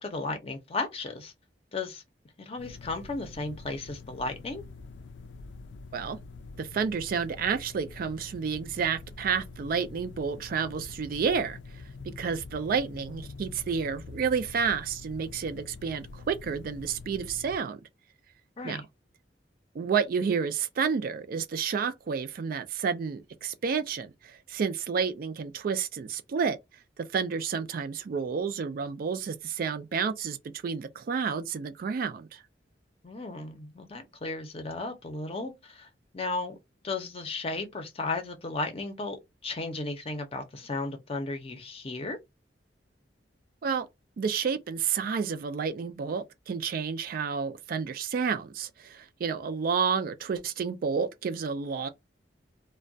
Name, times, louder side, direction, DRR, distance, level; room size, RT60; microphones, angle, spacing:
voice 1, 0.0-1.3 1.7-2.0 2.4-4.6 18.6-18.8 33.0-35.9 36.1-36.6 36.8-39.2 39.4-42.2, left 3 dB, 35° left, 0.6 m, -34 dB
sound 1, 2.6-17.6, left 3 dB, 85° left, 0.4 m, -45 dB
voice 2, 6.6-17.8 18.6-18.8 19.7-26.6 27.0-30.4 30.6-32.4 43.6-43.9 44.2-51.9, right 6 dB, 50° right, 0.3 m, -30 dB
2.2 x 2.1 x 2.6 m
head